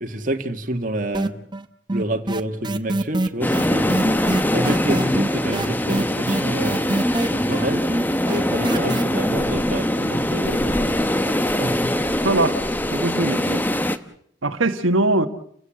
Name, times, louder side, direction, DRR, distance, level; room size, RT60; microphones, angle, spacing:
voice 1, 0.0-1.4 1.9-3.9 4.5-6.8 7.3-7.8 8.3-11.9, right 1 dB, 40° right, 4 dB, 1.9 m, -28 dB
sound 1, 1.1-1.6 1.9-9.0, right 2 dB, 25° right, 0.9 m, -24 dB
sound 2, 3.4-14.0, left 1 dB, 10° left, 0.9 m, -22 dB
voice 2, 12.2-12.6 12.9-13.6 14.4-15.3, right 2 dB, 90° right, 6 dB, 1.4 m, -21 dB
30.0 x 16.0 x 7.6 m, 0.65 s
head